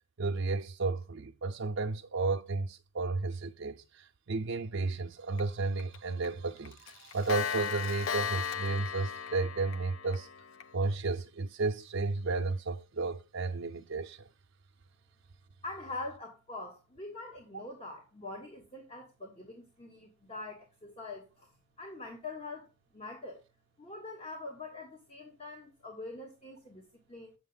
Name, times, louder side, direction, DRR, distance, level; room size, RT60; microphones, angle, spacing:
voice 1, 0.2-10.3 10.7-14.3 17.5-17.6, right 3 dB, 65° right, 0.5 m, -33 dB
Clock, 5.4-5.5 5.8-6.0 6.2-6.3 6.7-10.7, left 7 dB, 70° left, 0.4 m, -36 dB
voice 2, 15.6-21.5 21.8-23.4 23.8-27.3, left 2 dB, 30° left, 1.2 m, -44 dB
7.7 x 6.6 x 3.9 m
head